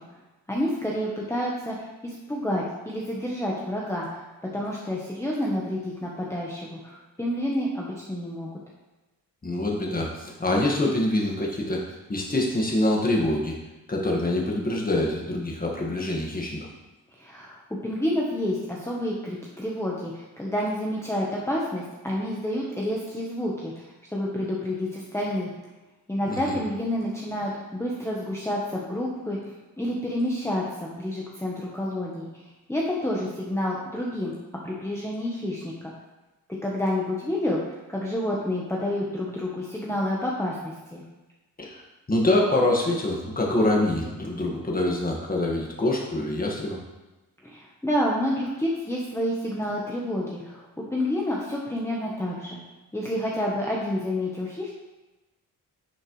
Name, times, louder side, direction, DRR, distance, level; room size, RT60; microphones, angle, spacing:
voice 1, 0.5-4.2 4.5-8.5 17.2-25.5 26.1-32.3 32.7-34.3 34.6-35.9 36.6-37.6 37.9-41.0 47.4-52.6 52.9-54.7, left 1 dB, 10° left, -4 dB, 1.1 m, -29 dB
voice 2, 9.4-13.6 13.9-16.6 26.3-26.5 41.6-46.8, left 1 dB, 25° left, -2 dB, 1.7 m, -25 dB
10.0 x 6.3 x 3.2 m, 1.1 s
wide cardioid pair, 115°, 35 cm